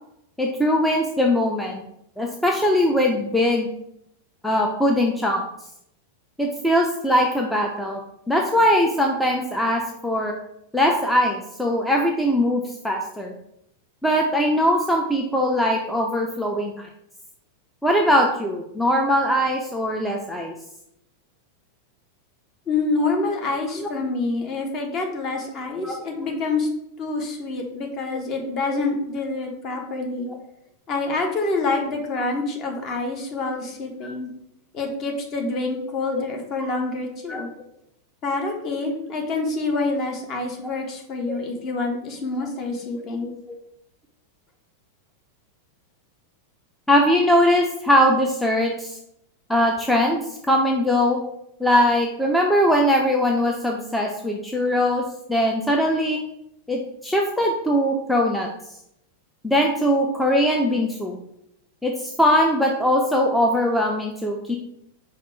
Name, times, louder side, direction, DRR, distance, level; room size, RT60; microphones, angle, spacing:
voice 1, 0.4-1.8 2.2-3.7 4.4-5.4 6.4-8.0 8.3-10.3 10.7-13.3 14.0-16.9 17.8-20.5 23.8-23.9 25.8-26.0 28.0-28.2 28.6-28.8 29.9-30.4 36.1-36.2 37.3-37.4 41.3-41.4 43.2-43.3 46.9-49.0 49.5-51.2 51.6-55.0 55.3-56.2 56.7-58.5 59.4-61.2 61.8-64.6, equal, 5° left, 1 dB, 0.5 m, -21 dB
voice 2, 22.7-26.7 27.0-30.3 30.9-34.3 34.7-37.5 38.2-43.3, left 3 dB, 35° left, 2 dB, 1.0 m, -27 dB
5.0 x 2.4 x 4.4 m, 0.77 s
figure-of-eight pair, 90°, 0 cm